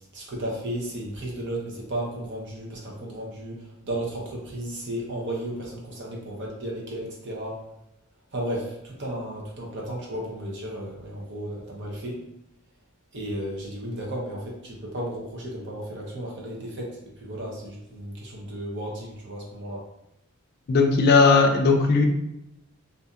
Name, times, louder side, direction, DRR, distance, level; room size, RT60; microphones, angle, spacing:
voice 1, 0.1-7.6 8.3-12.2 13.1-19.8, right 1 dB, 55° right, -2 dB, 0.7 m, -34 dB
voice 2, 20.7-22.0, left 4 dB, 45° left, 3 dB, 0.4 m, -17 dB
2.6 x 2.5 x 2.4 m, 0.84 s
head